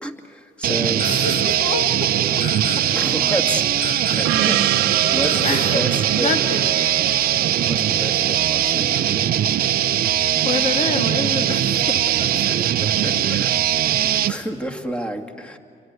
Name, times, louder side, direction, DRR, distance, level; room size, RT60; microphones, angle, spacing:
voice 1, 0.0-1.1 2.9-6.5 7.6-9.3 11.5-11.6 12.4-13.7 14.0-15.6, equal, 5° left, 4 dB, 2.3 m, -30 dB
sound 1, 0.6-14.3, right 11 dB, 60° right, 0.9 m, -20 dB
sound 2, 1.0-1.7 2.4-3.1 3.8-4.5 5.2-6.0, left 5 dB, 75° left, 2.5 m, -35 dB
voice 2, 1.0-2.5 2.8-2.9 5.4-5.8 6.1-6.7 10.4-12.9 14.2-14.5, left 4 dB, 45° left, 4 dB, 2.4 m, -28 dB
Gong, 4.2-9.0, right 14 dB, 90° right, 1.1 m, -27 dB
29.5 x 23.5 x 8.2 m, 2.2 s
cardioid pair, 110°, 17 cm